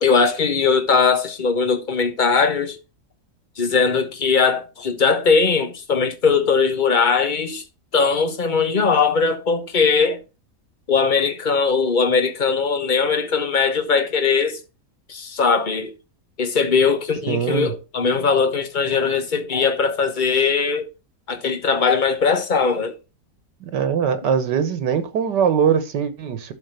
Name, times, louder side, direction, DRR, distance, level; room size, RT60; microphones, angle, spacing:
voice 1, 0.0-2.8 3.6-7.6 7.9-10.2 10.9-14.6 15.1-15.9 16.4-20.9 21.3-22.9, left 5 dB, 30° left, 1.3 m, -20 dB
voice 2, 17.3-17.7 23.6-26.5, right 7 dB, 90° right, 1.9 m, -21 dB
12.0 x 4.3 x 5.7 m
omnidirectional pair, 1.8 m